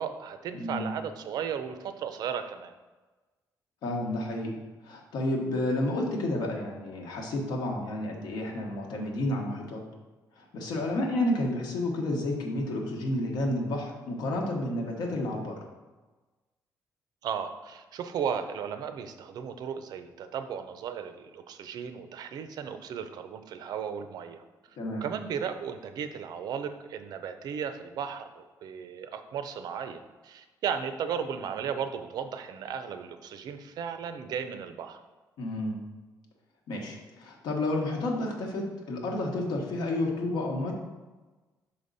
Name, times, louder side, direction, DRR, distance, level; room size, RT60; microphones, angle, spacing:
voice 1, 0.0-2.7 10.8-11.0 17.2-24.4 25.0-35.0, right 7 dB, 65° right, 9 dB, 0.5 m, -35 dB
voice 2, 0.6-0.9 3.8-4.5 4.8-9.8 10.4-15.6 24.8-25.0 35.4-35.8 36.7-40.7, left 1 dB, 75° left, 0 dB, 1.3 m, -30 dB
5.7 x 5.1 x 4.0 m, 1.2 s
cardioid pair, 155°, 7 cm